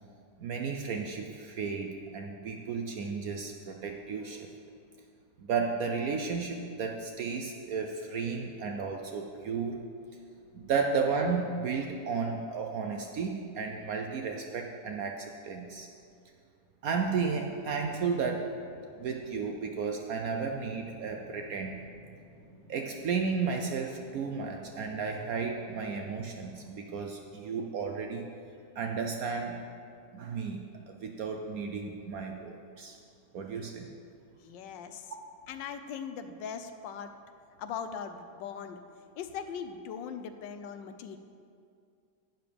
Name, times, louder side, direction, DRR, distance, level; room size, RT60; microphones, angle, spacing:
voice 1, 0.4-4.5 5.4-9.8 10.5-15.9 16.8-18.4 19.0-21.8 22.7-28.3 28.8-29.6 30.1-30.6 30.9-33.0 33.3-33.9, right 5 dB, 70° right, 3 dB, 0.9 m, -33 dB
sound 1, 17.0-26.7, left 2 dB, 40° left, 1.8 m, -54 dB
voice 2, 34.4-35.1 35.5-37.1 37.6-38.8 39.2-41.2, left 7 dB, 80° left, 9 dB, 1.3 m, -40 dB
11.5 x 9.1 x 3.4 m, 2.4 s
omnidirectional pair, 2.0 m